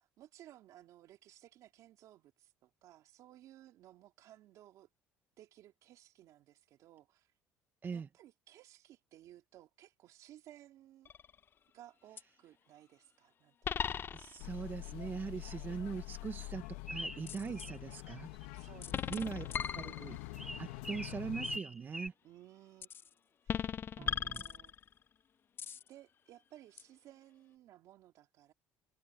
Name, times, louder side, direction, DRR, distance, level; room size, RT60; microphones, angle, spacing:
voice 1, 0.0-4.9 5.4-7.3 7.9-11.1 11.7-14.0 15.6-16.0 17.5-18.1 18.5-19.8 22.2-23.2 23.4-24.7 25.9-28.5, right 13 dB, 65° right, 2.9 m, -59 dB
sound 1, 11.0-11.5 12.2-12.3 13.6-14.6 17.3-17.7 18.8-20.4 22.8-23.1 23.5-25.0 25.6-25.9 26.8-26.9, left 8 dB, 35° left, 0.4 m, -38 dB
voice 2, 14.1-16.6 16.9-18.3 19.1-19.5 19.7-20.2 20.6-22.1 24.0-24.4, right 5 dB, 35° right, 1.2 m, -41 dB
sound 2, 14.4-21.6, left 19 dB, 85° left, 1.3 m, -46 dB
sound 3, 16.9-17.8 18.1-18.7 20.3-22.1, right 1 dB, 5° right, 1.7 m, -43 dB
supercardioid pair, 90°, 6 cm